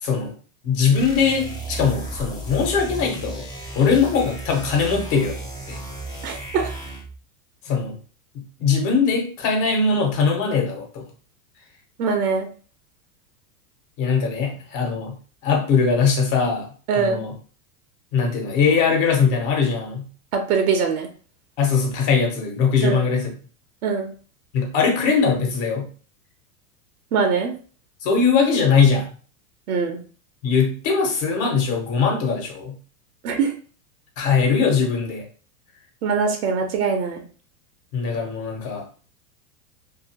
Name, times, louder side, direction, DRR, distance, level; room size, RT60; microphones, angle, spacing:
voice 1, 0.0-0.3 0.6-3.4 3.7-5.4 5.7-5.8 7.6-8.0 8.3-11.0 14.0-15.2 15.4-16.7 16.9-17.3 18.1-20.1 21.6-23.3 24.5-25.9 28.0-29.1 30.4-32.8 34.2-35.3 37.9-38.8, left 5 dB, 55° left, 2 dB, 1.2 m, -21 dB
sound 1, 0.9-7.2, right 2 dB, 10° left, 0.3 m, -34 dB
voice 2, 6.2-6.7 12.0-12.5 16.9-17.3 20.3-21.1 22.8-23.0 23.8-24.1 27.1-27.5 29.7-30.0 33.2-33.6 36.0-37.2, right 5 dB, 75° right, 4 dB, 0.8 m, -22 dB
2.7 x 2.4 x 2.8 m, 0.40 s
hypercardioid pair, 110°, 45 cm